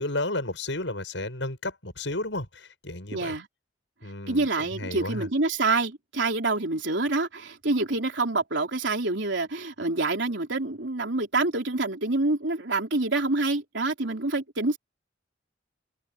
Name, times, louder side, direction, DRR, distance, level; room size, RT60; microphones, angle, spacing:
voice 1, 0.0-3.4 4.0-5.3, left 2 dB, 80° left, 7.2 m, -32 dB
voice 2, 3.1-3.5 4.3-14.8, right 2 dB, 80° right, 3.4 m, -27 dB
head